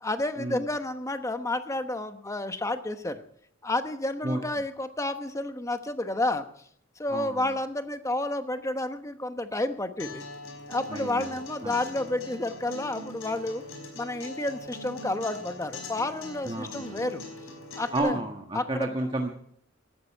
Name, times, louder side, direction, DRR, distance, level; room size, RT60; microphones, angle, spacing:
voice 1, 0.0-3.2 3.6-6.5 7.0-10.3 10.7-13.6 13.9-17.2 17.8-18.2 18.5-18.9, left 2 dB, 15° left, 8 dB, 1.1 m, -30 dB
voice 2, 7.1-7.5 10.9-11.8 16.4-17.0 17.9-19.3, right 1 dB, 25° right, 2 dB, 1.4 m, -31 dB
Acoustic guitar, 10.0-18.0, left 1 dB, 75° left, 5.1 m, -42 dB
17.5 x 14.0 x 4.6 m, 0.65 s
head